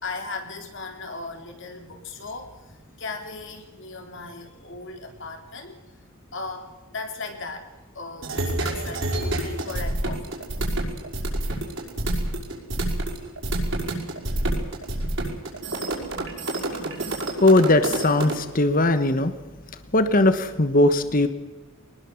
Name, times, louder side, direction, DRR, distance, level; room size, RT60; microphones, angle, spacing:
voice 1, 0.0-5.8 6.3-7.7 7.9-10.4, left 3 dB, 60° left, 4 dB, 3.9 m, -37 dB
sound 1, 8.2-18.4, right 1 dB, 60° right, 5.7 m, -28 dB
voice 2, 17.4-19.3 19.9-21.3, left 2 dB, 40° left, 10 dB, 1.2 m, -19 dB
24.0 x 20.0 x 7.2 m, 1.2 s
head